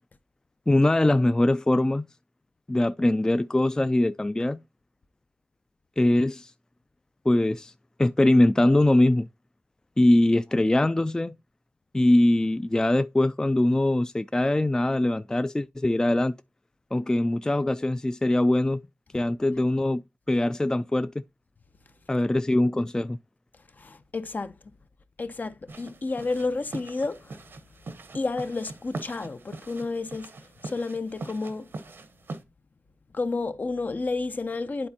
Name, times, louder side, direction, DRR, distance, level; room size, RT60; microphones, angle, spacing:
voice 1, 0.7-2.1 2.7-4.6 6.0-6.5 7.3-7.7 8.0-9.3 10.0-11.3 11.9-16.3 16.9-18.8 19.1-20.0 20.3-21.1 22.1-23.2, left 1 dB, 20° left, 0.3 m, -22 dB
voice 2, 23.6-24.7 25.2-27.5 28.1-31.7 33.1-34.9, left 3 dB, 55° left, 0.6 m, -31 dB
sound 1, 25.7-32.4, right 3 dB, 90° right, 1.0 m, -42 dB
11.0 x 4.2 x 2.7 m
wide cardioid pair, 75°, 4 cm